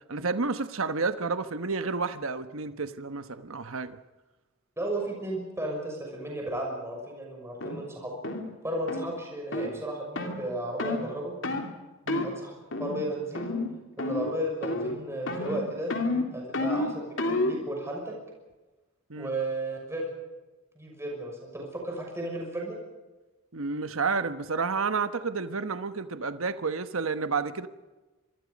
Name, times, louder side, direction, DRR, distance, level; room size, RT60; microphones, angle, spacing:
voice 1, 0.1-4.0 12.1-12.3 19.1-19.3 23.5-27.7, right 4 dB, 75° right, 1.2 m, -30 dB
voice 2, 4.8-8.2 8.6-11.3 12.2-12.5 12.8-13.5 14.0-16.0 16.3-18.1 19.2-20.1 20.8-22.8, right 1 dB, 15° right, 6.0 m, -34 dB
sound 1, 7.6-7.8 8.2-8.5 8.9-9.1 9.5-9.7 10.2-10.4 10.8-11.1 11.4-11.7 12.1-12.3 12.7-13.1 13.3-13.7 14.0-14.4 14.6-15.0 15.3-17.6, left 2 dB, 60° left, 3.3 m, -30 dB
26.5 x 24.0 x 5.3 m
head